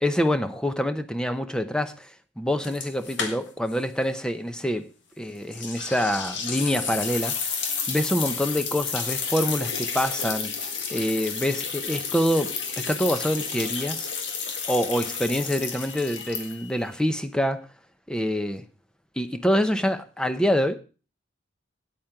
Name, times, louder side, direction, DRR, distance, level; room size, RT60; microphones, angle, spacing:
voice 1, 0.0-4.9 5.2-7.6 7.9-10.5 10.9-14.1 14.7-17.6 18.1-18.6 19.2-20.8, equal, 5° left, 0.7 m, -26 dB
sound 1, 2.6-3.8 4.0-4.1 5.5-16.8, left 6 dB, 70° left, 1.8 m, -31 dB
9.1 x 8.5 x 5.8 m
head